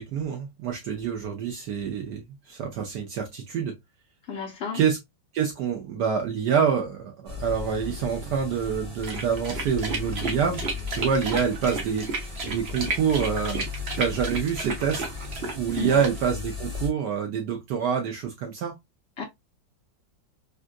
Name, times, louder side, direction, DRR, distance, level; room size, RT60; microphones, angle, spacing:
voice 1, 0.0-3.7 4.7-5.0 5.3-10.6 10.9-13.7 14.0-15.0 15.6-18.7, right 7 dB, 70° right, 1.1 m, -27 dB
voice 2, 4.3-4.8 15.7-16.1 19.2-19.3, left 6 dB, 65° left, 0.6 m, -32 dB
sound 1, 7.3-16.9, left 5 dB, 20° right, 0.9 m, -36 dB
sound 2, 9.0-16.3, right 3 dB, 50° right, 0.7 m, -32 dB
3.6 x 2.4 x 2.4 m
omnidirectional pair, 2.2 m